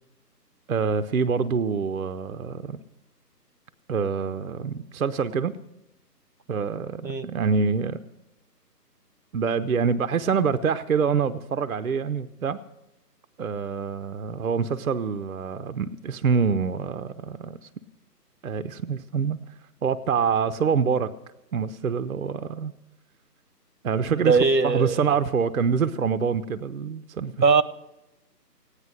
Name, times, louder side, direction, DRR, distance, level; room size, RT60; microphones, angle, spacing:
voice 1, 0.7-2.8 3.9-5.5 6.5-8.0 9.3-12.6 13.4-17.6 18.4-19.4 19.8-21.1 21.5-22.7 23.8-24.4 24.6-27.3, right 6 dB, 60° right, 10 dB, 0.6 m, -26 dB
voice 2, 24.1-25.0 27.4-27.6, right 4 dB, 85° right, 15 dB, 1.0 m, -20 dB
15.5 x 9.8 x 6.2 m, 0.92 s
figure-of-eight pair, 150°, 50 cm